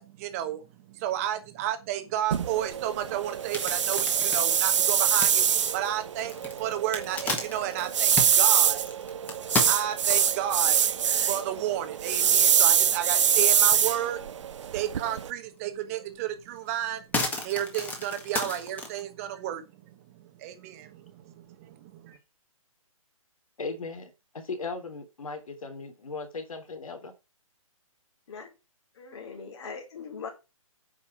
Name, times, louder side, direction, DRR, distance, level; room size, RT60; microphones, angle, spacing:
voice 1, 0.0-9.4 9.6-14.2 14.6-22.2, right 11 dB, 25° right, 1.2 m, -32 dB
sound 1, 2.3-15.3, right 8 dB, 55° right, 0.8 m, -24 dB
sound 2, 3.3-10.5 11.0-11.1 11.6-11.7 12.0-12.8 13.2-14.1 14.5-14.6 16.0-16.1 16.5-19.0, left 3 dB, 10° left, 1.6 m, -34 dB
voice 2, 23.6-27.1, left 4 dB, 75° left, 3.5 m, -37 dB
voice 3, 28.9-30.3, left 5 dB, 50° left, 4.4 m, -40 dB
9.7 x 5.6 x 6.0 m
hypercardioid pair, 155°, 18 cm